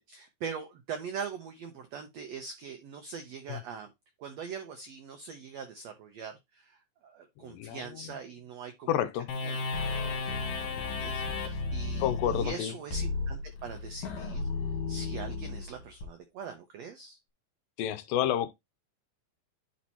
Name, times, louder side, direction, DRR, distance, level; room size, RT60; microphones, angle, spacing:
voice 1, 0.1-3.9 4.2-8.9 9.4-9.6 11.0-14.5 14.9-17.2, right 6 dB, 85° right, 1.5 m, -42 dB
voice 2, 7.4-8.2 8.9-9.3 12.0-12.7 17.8-18.5, left 11 dB, 80° left, 2.2 m, -30 dB
sound 1, 9.3-16.1, left 3 dB, 65° left, 2.8 m, -33 dB
10.5 x 4.2 x 2.8 m
omnidirectional pair, 4.1 m